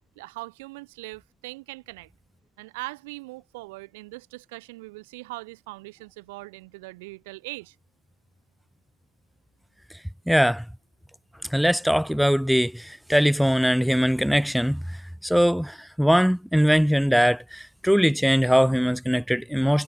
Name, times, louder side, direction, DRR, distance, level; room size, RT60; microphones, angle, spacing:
voice 1, 0.1-2.1 2.6-7.7, right 23 dB, 65° right, 3.3 m, -40 dB
voice 2, 10.3-10.6 11.5-19.8, equal, ahead, 0.6 m, -21 dB
hypercardioid pair, 100°, 0 cm